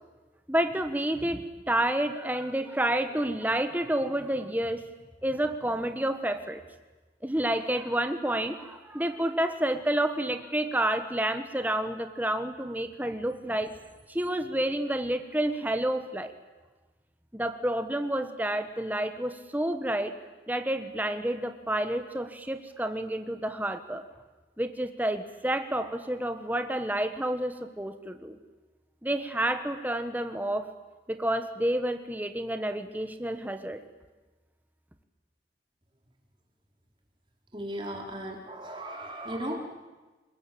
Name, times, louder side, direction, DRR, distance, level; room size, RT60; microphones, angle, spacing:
voice 1, 0.5-4.8 5.2-6.6 7.2-13.7 14.1-16.3 17.3-20.1 20.5-24.0 24.6-28.4 29.0-30.7 31.1-33.8, right 1 dB, 10° right, 8 dB, 1.5 m, -29 dB
voice 2, 37.5-39.6, equal, 30° right, 1 dB, 4.5 m, -36 dB
29.5 x 20.5 x 8.7 m, 1.2 s
head